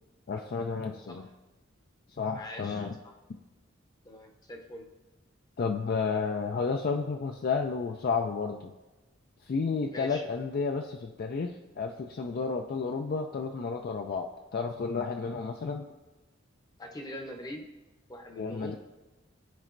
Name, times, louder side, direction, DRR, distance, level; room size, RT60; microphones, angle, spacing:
voice 1, 0.3-1.3 2.2-3.0 5.6-8.7 9.4-15.9 18.4-18.8, left 5 dB, 45° left, 5 dB, 0.3 m, -31 dB
voice 2, 2.3-3.1 4.0-4.9 9.9-10.2 16.8-17.7 18.1-18.8, equal, 20° left, 3 dB, 0.7 m, -43 dB
12.5 x 4.3 x 2.5 m, 1.1 s
head